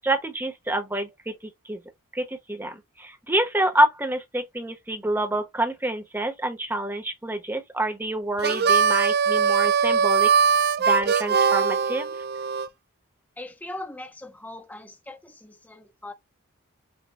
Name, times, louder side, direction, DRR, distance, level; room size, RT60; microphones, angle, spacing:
voice 1, 0.0-1.3 1.6-1.8 2.1-10.3 10.8-12.2, right 1 dB, 10° right, 1.0 m, -27 dB
Harmonica, 8.4-12.7, right 6 dB, 45° right, 0.4 m, -21 dB
voice 2, 13.4-16.1, left 1 dB, 10° left, 0.6 m, -40 dB
6.2 x 2.3 x 3.2 m
head